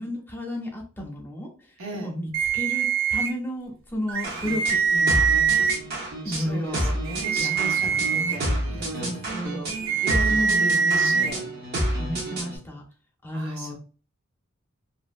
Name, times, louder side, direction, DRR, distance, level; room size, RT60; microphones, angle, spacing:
voice 1, 0.0-5.7 6.2-7.0 7.3-7.6 7.8-8.4 9.0-9.8 10.3-11.3 11.9-12.8 13.2-13.7, equal, 10° left, -2 dB, 0.6 m, -33 dB
voice 2, 1.8-2.1 6.2-9.8 10.0-11.5 13.3-13.8, right 3 dB, 85° right, 1 dB, 0.8 m, -36 dB
sound 1, 2.3-3.3 4.1-5.8 7.1-8.4 9.7-11.3, right 6 dB, 70° right, 0.4 m, -23 dB
sound 2, 4.2-12.6, right 1 dB, 50° right, 0.9 m, -30 dB
2.7 x 2.1 x 2.4 m, 0.36 s
head